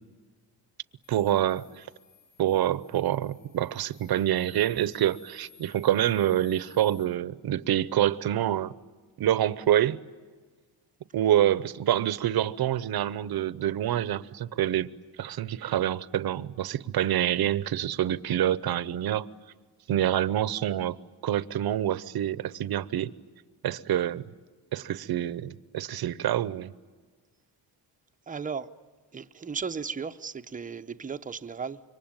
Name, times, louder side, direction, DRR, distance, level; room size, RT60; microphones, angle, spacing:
sound 1, 1.0-7.0, left 9 dB, 85° left, 4.7 m, -58 dB
voice 1, 1.1-1.9 2.4-8.7 9.2-10.0 11.1-14.9 15.2-19.3 19.9-21.0 21.2-23.1 23.6-24.2 24.7-26.7, right 11 dB, 60° right, 0.9 m, -26 dB
voice 2, 28.3-28.7 29.1-31.8, right 5 dB, 20° right, 0.7 m, -35 dB
26.5 x 24.0 x 9.0 m
wide cardioid pair, 160°, 41 cm